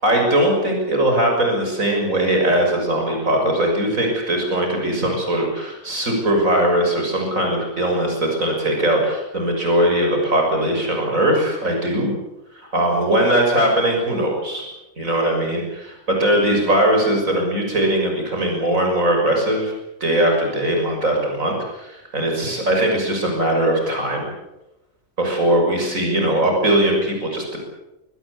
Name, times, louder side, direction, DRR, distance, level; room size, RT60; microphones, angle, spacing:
voice 1, 0.0-12.1 12.6-14.7 15.0-19.7 20.0-24.3 25.2-27.6, right 1 dB, 85° right, 1 dB, 7.0 m, -20 dB
23.5 x 20.0 x 8.7 m, 0.95 s
omnidirectional pair, 1.4 m